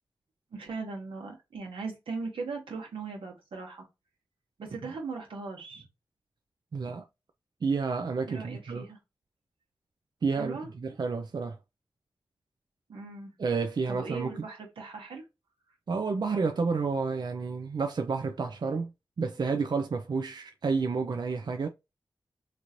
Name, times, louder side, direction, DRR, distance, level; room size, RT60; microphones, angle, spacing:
voice 1, 0.5-3.9 4.6-5.9 8.3-9.0 10.3-10.7 12.9-13.3 13.9-15.2, right 4 dB, 85° right, 1.1 m, -39 dB
voice 2, 6.7-7.0 7.6-8.9 10.2-11.6 13.4-14.3 15.9-18.9 19.2-21.7, right 4 dB, 55° right, 0.4 m, -30 dB
3.0 x 2.5 x 2.8 m
cardioid pair, 40°, 9 cm